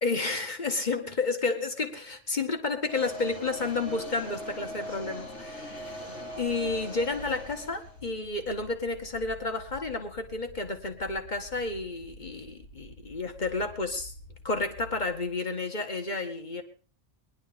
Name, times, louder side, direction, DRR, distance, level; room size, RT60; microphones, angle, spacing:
voice 1, 0.0-6.0 6.4-14.1 14.4-16.6, left 3 dB, 40° left, 5 dB, 2.1 m, -31 dB
sound 1, 2.8-8.0, equal, 85° left, 4.3 m, -40 dB
sound 2, 6.3-15.3, left 1 dB, 65° left, 7.7 m, -49 dB
20.5 x 11.0 x 5.2 m, 0.43 s
omnidirectional pair, 1.1 m